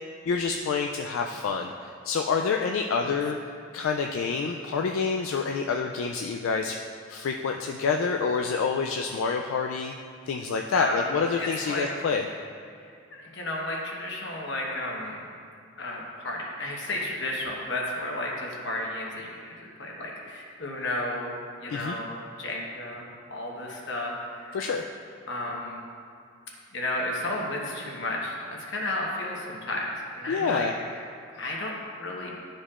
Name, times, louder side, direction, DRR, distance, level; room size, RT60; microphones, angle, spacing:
voice 1, 0.3-3.4 3.7-6.8 7.1-9.9 10.3-12.3 21.7-22.0 24.5-24.9 30.3-30.7, left 5 dB, 75° left, 2 dB, 0.3 m, -27 dB
voice 2, 10.7-11.9 13.1-15.2 15.8-21.3 21.6-23.0 23.3-24.5 25.3-25.8 26.7-29.9 30.1-30.7 31.4-31.7 32.0-32.3, left 1 dB, 55° left, -2 dB, 1.1 m, -32 dB
11.5 x 5.1 x 2.4 m, 2.3 s
head